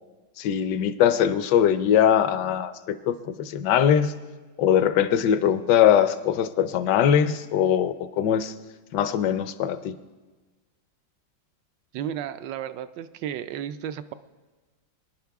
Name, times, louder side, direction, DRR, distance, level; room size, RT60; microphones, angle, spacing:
voice 1, 0.4-4.1 4.6-8.5 8.9-9.9, left 9 dB, 70° left, 13 dB, 1.2 m, -21 dB
voice 2, 11.9-14.1, right 10 dB, 75° right, 12 dB, 1.1 m, -33 dB
23.5 x 10.5 x 3.5 m, 1.3 s
omnidirectional pair, 2.1 m